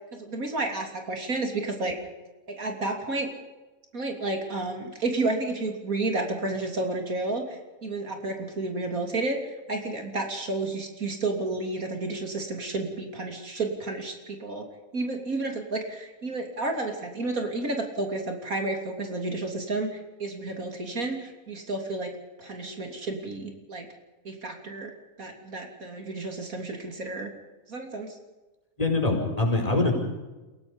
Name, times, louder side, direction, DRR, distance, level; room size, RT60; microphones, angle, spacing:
voice 1, 0.2-2.0 2.6-3.3 3.9-9.4 9.7-14.7 14.9-22.1 22.4-23.9 24.3-24.9 25.2-27.3 27.7-28.2, right 2 dB, 75° right, 3 dB, 3.6 m, -31 dB
voice 2, 28.8-29.9, left 2 dB, 25° left, 1 dB, 5.3 m, -23 dB
29.5 x 17.5 x 5.3 m, 1.1 s
omnidirectional pair, 1.5 m